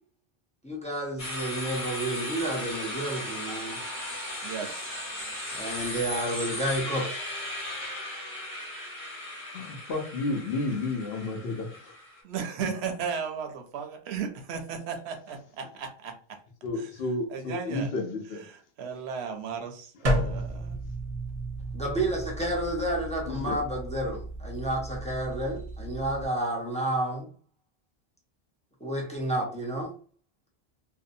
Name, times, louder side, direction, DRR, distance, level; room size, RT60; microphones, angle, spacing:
voice 1, 0.6-3.8 5.5-7.0 21.7-27.3 28.8-29.9, right 1 dB, 10° left, -2 dB, 0.4 m, -30 dB
sound 1, 1.2-12.2, left 1 dB, 35° left, 1.1 m, -36 dB
voice 2, 4.4-4.9 12.2-16.1 16.8-16.9 17.3-17.9 18.3-20.9, right 6 dB, 75° right, 4 dB, 0.8 m, -35 dB
voice 3, 9.5-11.9 16.6-18.4 23.3-23.6, left 2 dB, 70° left, 2 dB, 0.8 m, -31 dB
sound 2, 20.0-26.2, right 1 dB, 40° right, 0.7 m, -33 dB
2.6 x 2.1 x 2.5 m, 0.42 s
omnidirectional pair, 1.1 m